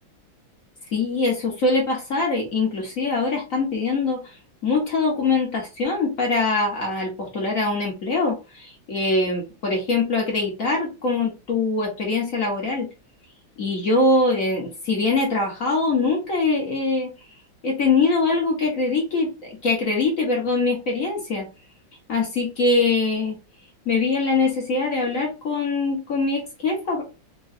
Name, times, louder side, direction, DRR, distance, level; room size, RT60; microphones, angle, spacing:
voice 1, 0.9-4.2 4.6-12.9 13.6-17.1 17.6-21.4 22.1-23.4 23.8-27.0, left 3 dB, 45° left, -1 dB, 1.5 m, -23 dB
5.0 x 2.7 x 2.7 m, 0.28 s
omnidirectional pair, 2.2 m